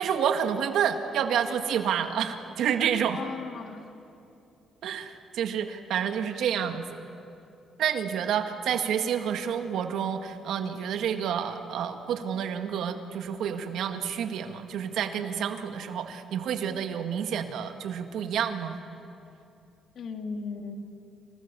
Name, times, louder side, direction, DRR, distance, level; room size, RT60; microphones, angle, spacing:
voice 1, 0.0-3.2 4.8-7.0 7.8-18.8, right 8 dB, 80° right, 6 dB, 2.0 m, -29 dB
voice 2, 3.1-3.9 19.9-20.8, left 5 dB, 65° left, 4 dB, 2.6 m, -36 dB
29.0 x 28.5 x 7.1 m, 2.7 s
cardioid pair, 90°, 0 cm